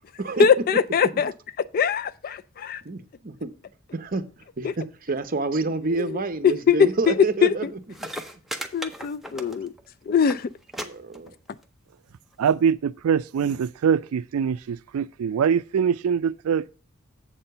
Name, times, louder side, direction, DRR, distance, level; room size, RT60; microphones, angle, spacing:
voice 1, 0.4-1.3 1.7-2.8 4.6-4.7 6.1-7.6 8.7-9.7 10.1-10.5, left 6 dB, 40° left, 0.3 m, -21 dB
voice 2, 2.8-3.5 3.9-8.1 10.8-11.3, right 3 dB, 40° right, 0.7 m, -29 dB
sound 1, 7.6-7.7 7.9-9.9 10.1-10.4 10.7-10.9 11.1-11.6 12.5-12.6, right 1 dB, ahead, 0.6 m, -35 dB
voice 3, 12.4-16.7, right 7 dB, 80° right, 0.4 m, -23 dB
7.5 x 4.3 x 6.6 m
head